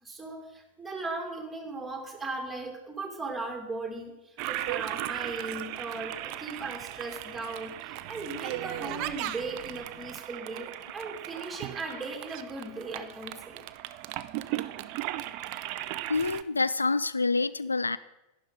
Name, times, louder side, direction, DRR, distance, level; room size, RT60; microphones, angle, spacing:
voice 1, 0.0-13.6, right 3 dB, 10° right, 3 dB, 2.5 m, -38 dB
Toilet flush, 4.4-16.4, right 14 dB, 45° right, 0.5 m, -37 dB
voice 2, 16.1-18.0, left 3 dB, 80° left, 16 dB, 0.3 m, -27 dB
11.5 x 10.5 x 4.9 m, 0.93 s
figure-of-eight pair, 90°, 0 cm